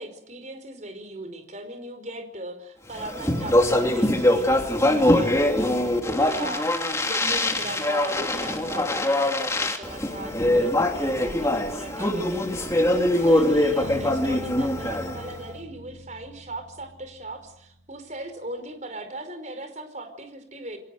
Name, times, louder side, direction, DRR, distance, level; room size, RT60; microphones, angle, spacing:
voice 1, 0.0-20.8, right 1 dB, 40° right, 7 dB, 5.0 m, -38 dB
Speech, 3.0-15.3, left 1 dB, 15° left, 3.0 m, -23 dB
sound 1, 13.8-17.8, left 1 dB, 80° left, 7.1 m, -42 dB
29.0 x 23.0 x 7.8 m, 0.75 s
head